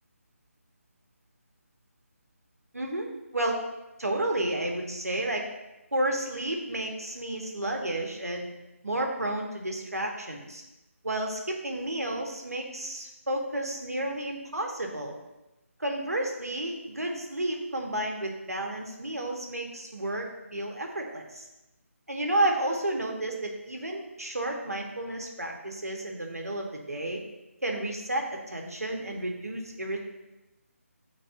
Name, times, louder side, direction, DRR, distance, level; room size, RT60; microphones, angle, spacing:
voice 1, 2.7-3.1 3.3-3.6 4.0-5.4 5.9-8.5 8.8-10.6 11.0-15.2 15.8-21.4 22.1-27.2 27.6-30.0, right 1 dB, 85° right, 1 dB, 1.4 m, -31 dB
9.0 x 4.0 x 2.7 m, 0.98 s
figure-of-eight pair, 155°, 8 cm